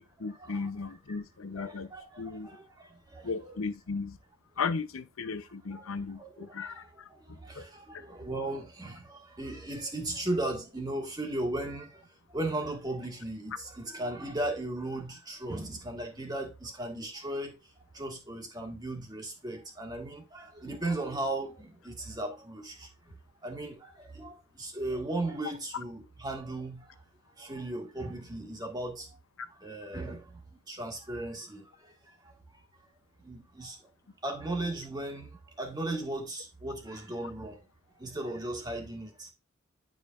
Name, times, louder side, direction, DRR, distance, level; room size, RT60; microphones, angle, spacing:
voice 1, 0.0-1.9 2.2-2.5 3.2-4.2 4.6-7.6 7.9-8.0 29.4-29.5, left 4 dB, 85° left, 0.7 m, -36 dB
voice 2, 1.6-3.5 5.7-17.6 17.9-23.2 23.4-27.0 27.4-29.1 29.6-30.4 30.7-32.6 33.2-33.8 34.2-37.7 38.0-39.3, right 2 dB, 20° right, 1.8 m, -37 dB
11.0 x 5.1 x 2.5 m
head